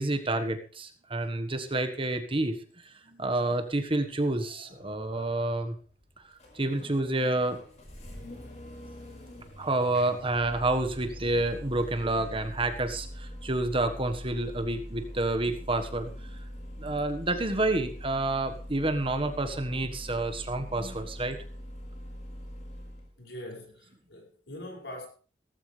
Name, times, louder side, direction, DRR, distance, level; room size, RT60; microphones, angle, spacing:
voice 1, 0.0-2.6 2.8-5.7 6.3-7.6 9.6-16.4 16.8-21.4, right 2 dB, 30° right, 1.5 m, -29 dB
voice 2, 4.4-5.6 9.6-10.2 15.0-15.1 23.2-25.1, left 1 dB, 85° left, 6.0 m, -45 dB
Engine starting, 4.7-23.1, equal, 40° left, 5.1 m, -43 dB
18.0 x 14.5 x 3.4 m
head